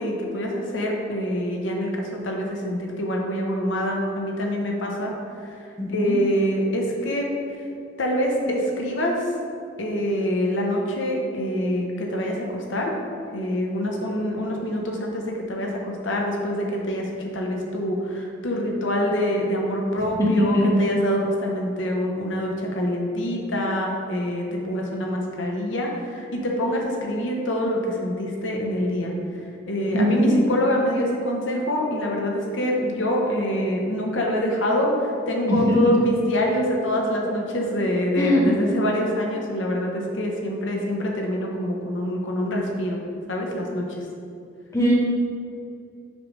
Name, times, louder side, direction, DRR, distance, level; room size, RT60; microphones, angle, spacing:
voice 1, 0.0-5.1 5.4-5.5 5.9-7.3 8.0-9.2 9.8-12.9 13.3-17.1 17.3-29.1 29.6-43.0 43.3-43.9, equal, 85° left, 0 dB, 0.9 m, -25 dB
voice 2, 5.8-6.2 20.2-20.3 20.5-20.7 29.9-30.3 35.5-35.8 38.2-38.5 44.7-44.9, left 1 dB, 15° left, -4 dB, 0.9 m, -20 dB
6.4 x 5.2 x 3.2 m, 2.5 s
head